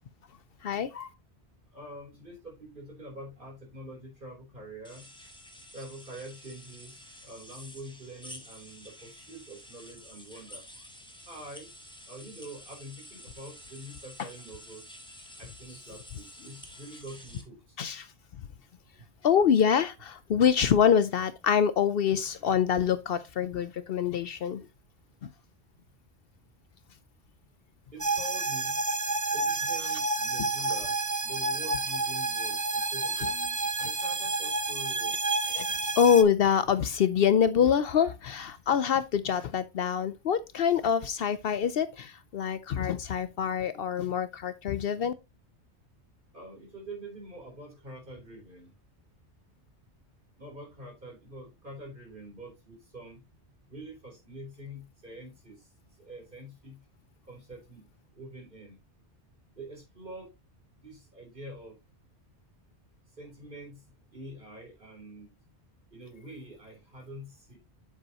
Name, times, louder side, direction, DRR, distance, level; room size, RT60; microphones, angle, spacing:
voice 1, 0.6-1.1 17.8-18.1 19.2-24.6 25.2-25.3 35.5-35.7 36.0-45.1, left 8 dB, 65° left, 0.8 m, -25 dB
voice 2, 1.7-5.0 5.7-10.6 11.3-11.7 12.1-14.9 15.4-17.8 19.0-19.1 27.9-28.8 29.3-33.3 33.8-35.2 46.3-48.7 50.4-53.2 53.7-55.7 56.0-56.8 57.3-57.9 58.1-58.8 59.6-60.3 60.8-61.8 63.2-63.8 64.1-65.3 65.9-67.6, right 1 dB, 50° right, 3.8 m, -45 dB
sound 1, 4.8-17.4, left 1 dB, 5° left, 1.4 m, -50 dB
sound 2, 28.0-36.2, right 3 dB, 25° right, 0.4 m, -30 dB
7.7 x 6.8 x 2.9 m
omnidirectional pair, 1.1 m